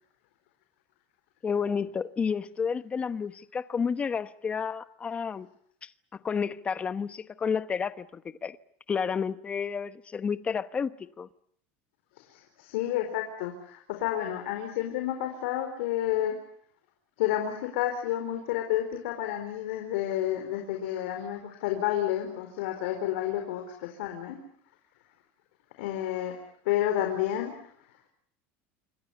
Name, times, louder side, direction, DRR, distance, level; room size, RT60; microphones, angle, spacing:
voice 1, 1.4-5.5 5.8-5.9 6.2-8.6 8.9-11.3, left 6 dB, 20° left, 1.0 m, -31 dB
voice 2, 12.2-16.3 17.2-24.4 25.8-26.4 26.6-27.5, left 12 dB, 85° left, 4.4 m, -30 dB
27.5 x 25.0 x 7.1 m
cardioid pair, 155°, 6 cm